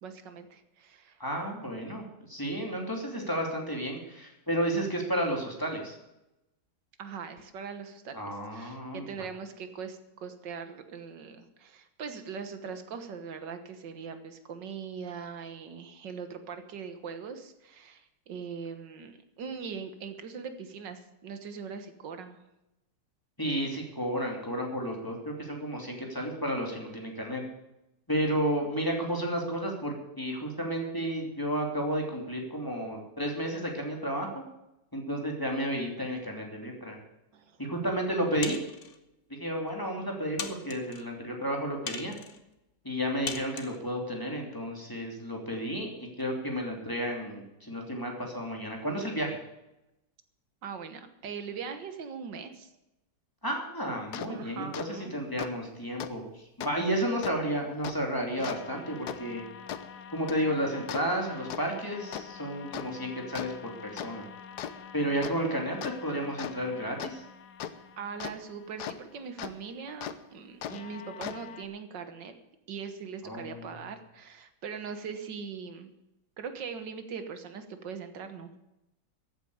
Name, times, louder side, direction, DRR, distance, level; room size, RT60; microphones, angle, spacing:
voice 1, 0.0-1.2 7.0-22.4 37.3-37.6 50.6-52.7 54.3-55.1 68.0-72.3 72.7-75.9 76.4-78.5, right 6 dB, 80° right, 8 dB, 1.9 m, -41 dB
voice 2, 1.2-6.0 8.1-9.1 23.4-27.4 28.1-34.4 34.9-37.0 37.6-38.6 39.4-42.2 42.8-49.4 53.4-59.4 60.1-64.3 64.9-67.2 73.2-73.7, equal, 10° left, 0 dB, 2.8 m, -32 dB
sound 1, 38.4-39.0 39.7-39.8 40.4-41.0 41.9-42.4 43.3-43.8, left 5 dB, 45° left, 1.4 m, -39 dB
sound 2, 54.1-54.3 54.7-54.9 55.4-55.5 56.0-56.1 56.6-56.7 57.2-57.3 57.8-57.9 58.4-69.0 69.4-69.5 70.0-70.1 70.6-71.6, left 9 dB, 70° left, 1.3 m, -40 dB
14.0 x 8.9 x 7.9 m, 0.92 s
omnidirectional pair, 1.9 m